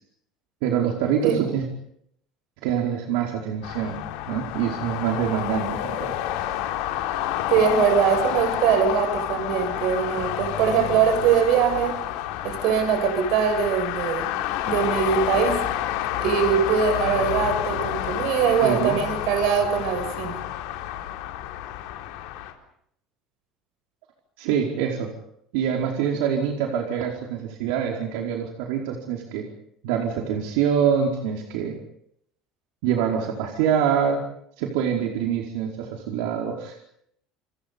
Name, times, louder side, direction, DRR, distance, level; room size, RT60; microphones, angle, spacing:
voice 1, 0.6-1.6 2.6-4.0 4.3-6.1 18.6-19.0 24.4-25.1 25.5-29.4 29.8-31.7 32.8-34.2 34.6-36.8, right 8 dB, 85° right, 1 dB, 4.8 m, -25 dB
sound 1, 3.6-22.5, left 12 dB, 80° left, 4.4 m, -29 dB
voice 2, 7.5-12.0 12.4-14.4 14.7-15.7 16.2-20.4, right 7 dB, 60° right, 9 dB, 7.2 m, -22 dB
30.0 x 26.0 x 5.5 m, 0.71 s
cardioid pair, 165°, 0 cm